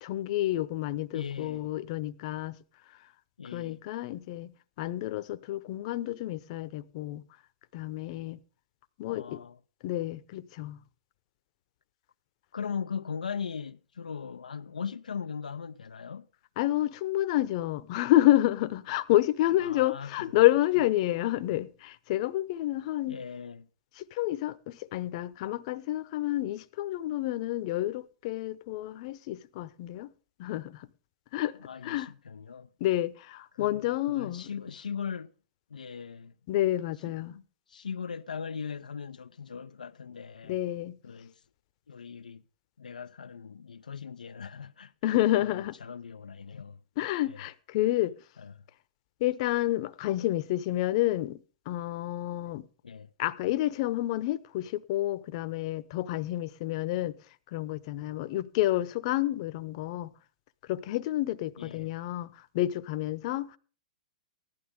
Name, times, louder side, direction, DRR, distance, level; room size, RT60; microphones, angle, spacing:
voice 1, 0.0-2.6 3.5-7.2 7.7-8.4 9.0-9.4 9.8-10.8 16.6-23.2 24.0-30.1 30.4-30.9 31.3-31.6 31.8-32.1 32.8-34.5 36.5-37.3 40.5-41.0 45.0-45.7 47.0-48.2 49.2-52.7 53.2-57.1 57.5-60.1 60.7-62.3 62.5-63.6, left 15 dB, 50° left, 0.8 m, -29 dB
voice 2, 1.1-1.7 3.4-3.8 9.1-9.6 12.5-16.3 19.6-20.5 23.1-23.7 31.6-32.7 33.5-35.3 35.7-36.3 37.0-37.4 37.7-40.6 41.0-41.4 41.9-42.4 42.8-46.8 47.3-47.4 48.4-48.6 52.8-53.1 61.6-61.9, left 6 dB, 90° left, 0.5 m, -39 dB
15.5 x 11.5 x 3.7 m
hypercardioid pair, 120°, 4 cm